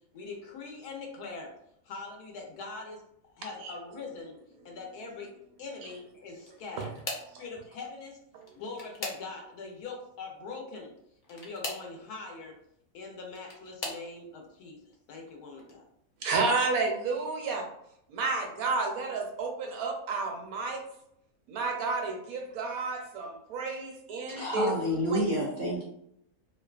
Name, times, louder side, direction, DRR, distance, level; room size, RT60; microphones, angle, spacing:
voice 1, 0.1-1.5 1.8-4.4 4.6-5.3 5.6-7.0 7.4-8.2 8.5-10.9 11.3-12.6 12.9-15.8, left 3 dB, 90° left, 1 dB, 1.2 m, -42 dB
sound 1, 6.4-7.4 8.3-9.6 11.2-11.9 13.0-14.1 14.8-15.2 15.6-15.7 17.1-17.2, left 2 dB, 65° left, 0.4 m, -40 dB
voice 2, 16.2-17.7 18.1-20.8 21.5-24.7 25.1-25.2, right 3 dB, 75° right, 2 dB, 1.0 m, -31 dB
voice 3, 24.3-25.8, equal, 50° right, -6 dB, 0.6 m, -29 dB
2.8 x 2.2 x 2.3 m, 0.74 s
omnidirectional pair, 1.6 m